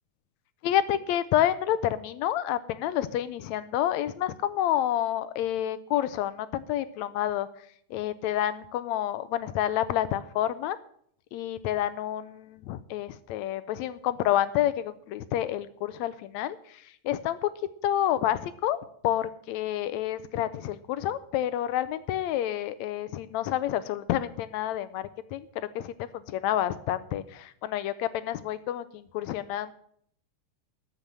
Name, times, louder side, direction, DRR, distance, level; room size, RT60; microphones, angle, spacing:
voice 1, 0.6-7.5 7.9-10.8 11.3-17.5 17.8-18.8 19.0-29.7, left 12 dB, 80° left, 15 dB, 1.7 m, -29 dB
13.5 x 6.9 x 7.3 m, 0.65 s
omnidirectional pair, 3.7 m